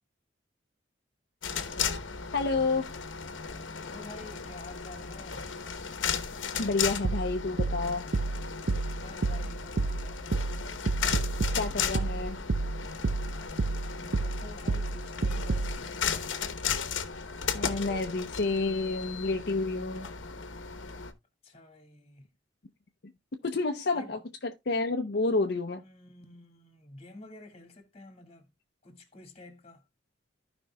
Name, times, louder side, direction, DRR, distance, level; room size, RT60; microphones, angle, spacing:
sound 1, 1.4-21.1, left 6 dB, 85° left, 1.0 m, -35 dB
voice 1, 2.3-2.9 6.6-8.1 11.5-12.4 17.5-20.1 23.4-25.8, left 3 dB, 60° left, 0.7 m, -29 dB
voice 2, 3.7-5.5 9.0-10.2 13.9-16.2 21.4-22.2 23.9-24.2 25.8-28.5 28.8-29.8, left 2 dB, 35° left, 2.0 m, -49 dB
sound 2, 7.0-15.8, right 3 dB, 60° right, 0.6 m, -30 dB
15.0 x 5.2 x 2.3 m
head